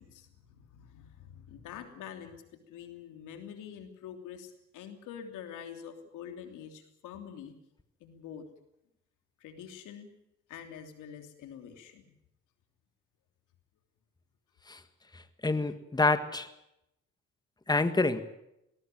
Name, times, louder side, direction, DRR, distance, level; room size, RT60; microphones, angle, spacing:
voice 1, 0.0-2.4 2.7-7.5 8.0-8.4 9.4-10.1 10.5-12.1, left 8 dB, 90° left, 6 dB, 3.2 m, -46 dB
voice 2, 15.1-16.5 17.7-18.2, left 3 dB, 15° left, 10 dB, 1.6 m, -27 dB
19.5 x 18.5 x 9.1 m, 0.85 s
cardioid pair, 90°, 30 cm